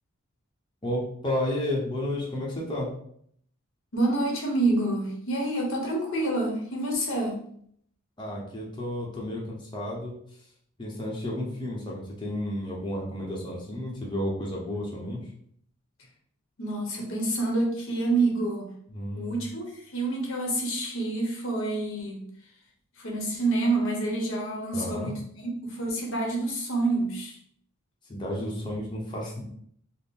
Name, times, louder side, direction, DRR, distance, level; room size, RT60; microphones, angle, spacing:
voice 1, 0.8-2.9 8.2-10.1 10.8-15.2 18.9-19.4 24.7-25.1 28.1-29.4, left 1 dB, 20° left, -4 dB, 0.7 m, -32 dB
voice 2, 3.9-7.4 16.6-18.7 19.1-22.2 23.0-27.4, right 2 dB, 65° left, 0 dB, 0.9 m, -28 dB
3.5 x 2.0 x 4.1 m, 0.66 s
head